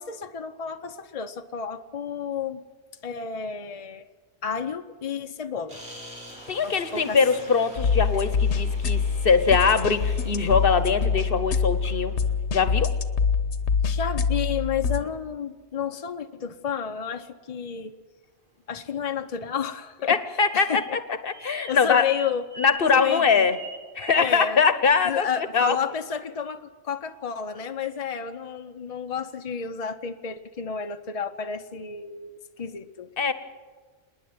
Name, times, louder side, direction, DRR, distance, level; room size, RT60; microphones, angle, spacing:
voice 1, 0.0-2.6 3.0-4.0 4.4-5.8 6.6-7.2 13.8-17.9 18.7-20.2 20.5-21.0 21.4-22.4 22.9-23.2 24.2-24.6 25.0-33.1, left 7 dB, 40° left, 6 dB, 0.7 m, -31 dB
sound 1, 5.7-12.3, right 1 dB, 80° right, 5.0 m, -45 dB
voice 2, 6.5-12.1 12.5-12.9 20.1-22.1 22.6-23.6 23.9-25.8 33.2-33.3, left 5 dB, 60° left, 12 dB, 1.1 m, -22 dB
sound 2, 7.8-15.0, left 5 dB, 90° left, 1.2 m, -25 dB
sound 3, 20.4-24.3, right 3 dB, 50° right, 1.6 m, -41 dB
27.0 x 10.0 x 9.6 m, 1.4 s
omnidirectional pair, 1.1 m